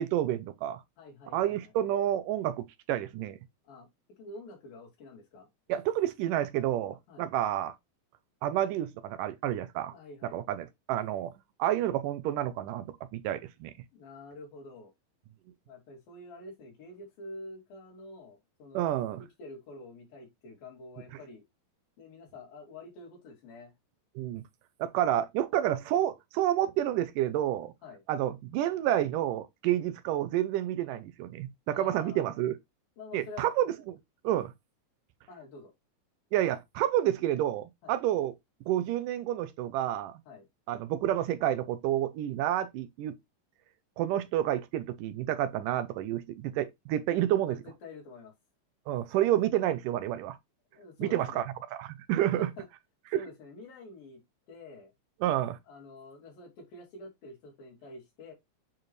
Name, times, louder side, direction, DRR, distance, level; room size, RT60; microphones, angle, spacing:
voice 1, 0.0-0.8 1.3-3.4 5.7-7.7 8.4-9.9 10.3-11.3 11.6-13.7 18.7-19.2 24.2-24.4 24.8-27.7 28.1-32.5 33.1-34.0 34.2-34.5 36.3-38.3 38.7-40.2 40.7-43.2 44.0-47.6 48.9-50.4 51.0-51.4 51.7-52.5 53.1-53.2 55.2-55.6, right 12 dB, 80° right, 2.1 m, -29 dB
voice 2, 1.0-1.7 3.6-3.9 4.2-5.5 7.1-7.3 9.9-10.4 13.9-14.9 15.7-18.9 19.2-21.4 22.0-23.7 27.8-28.0 31.7-32.3 33.0-33.5 35.3-35.7 37.8-38.0 40.3-40.4 47.4-48.3 50.7-51.4 52.4-52.7 53.1-54.2 54.5-54.9 55.7-58.3, left 2 dB, 85° left, 4.7 m, -47 dB
8.7 x 4.5 x 3.1 m
omnidirectional pair, 4.0 m